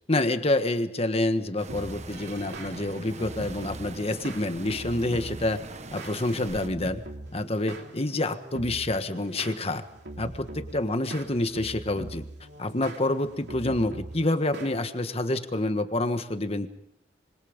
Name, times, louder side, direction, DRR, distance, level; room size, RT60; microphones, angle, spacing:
voice 1, 0.1-5.6 5.9-7.0 7.3-9.8 10.2-12.2 12.6-16.7, left 2 dB, 35° left, 9 dB, 1.5 m, -27 dB
sound 1, 1.6-6.7, right 2 dB, 40° right, 1.4 m, -42 dB
sound 2, 1.7-15.4, right 1 dB, 65° right, 3.0 m, -42 dB
26.0 x 24.5 x 5.2 m, 0.77 s
head